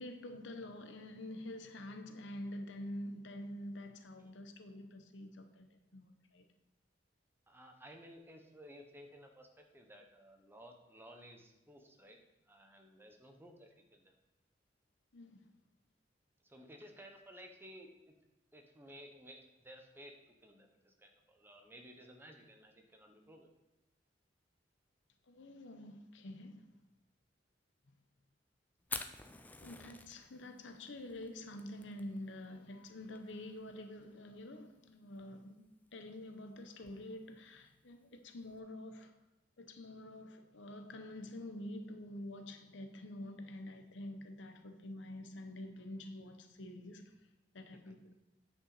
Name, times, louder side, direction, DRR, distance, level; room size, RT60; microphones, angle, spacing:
voice 1, 0.0-6.5 15.1-15.5 25.3-26.7 27.9-28.0 29.6-39.1 39.6-47.1 47.5-48.1, left 1 dB, 80° left, 0.8 m, -47 dB
voice 2, 7.5-9.5 9.7-12.2 12.5-14.1 16.4-18.1 18.5-20.1 20.4-23.5, equal, 10° right, 0.9 m, -56 dB
Fire, 28.8-38.6, left 3 dB, 10° left, 0.4 m, -51 dB
9.3 x 5.7 x 4.0 m
head